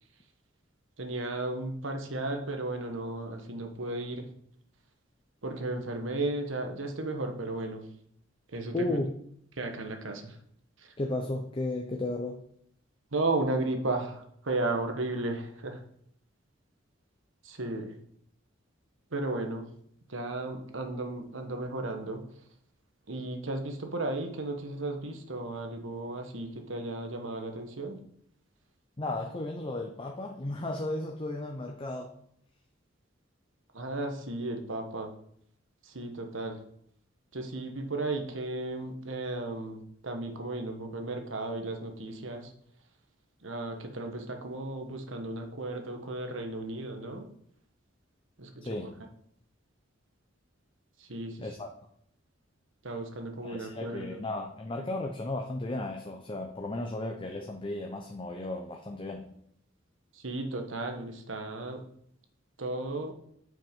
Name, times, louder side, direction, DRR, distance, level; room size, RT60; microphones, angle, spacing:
voice 1, 1.0-4.3 5.4-7.8 8.5-9.0 9.6-10.4 10.8-10.9 13.1-15.8 17.4-17.9 19.1-19.7 20.1-22.2 23.1-28.0 33.7-35.1 35.8-36.6 37.3-42.5 43.4-47.3 48.4-48.5 51.0-51.5 52.8-54.3 60.1-61.8 62.6-63.1, right 2 dB, 80° right, 4 dB, 1.3 m, -34 dB
voice 2, 8.7-9.1 11.0-12.4 29.0-32.2 48.6-49.0 51.4-51.7 53.4-59.3, left 2 dB, 25° left, 3 dB, 0.7 m, -34 dB
7.9 x 5.8 x 5.2 m, 0.67 s
head